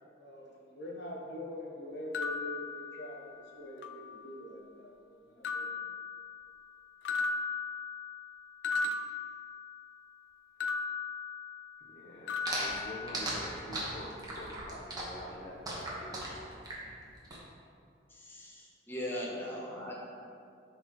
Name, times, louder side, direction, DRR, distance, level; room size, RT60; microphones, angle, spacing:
voice 1, 0.1-3.3 3.6-5.8 15.2-15.4 19.2-19.9, left 1 dB, 65° left, -2 dB, 1.2 m, -44 dB
sound 1, 2.1-3.4 3.8-4.6 5.4-6.7 7.0-10.0 10.6-12.0 12.3-13.6, left 4 dB, 85° left, 0.4 m, -37 dB
voice 2, 11.8-16.6, equal, 40° left, -4 dB, 0.7 m, -46 dB
sound 2, 12.4-17.4, right 2 dB, 20° right, 1.2 m, -37 dB
voice 3, 18.1-20.0, equal, 15° left, -4 dB, 0.9 m, -39 dB
11.0 x 4.1 x 3.1 m, 2.4 s
head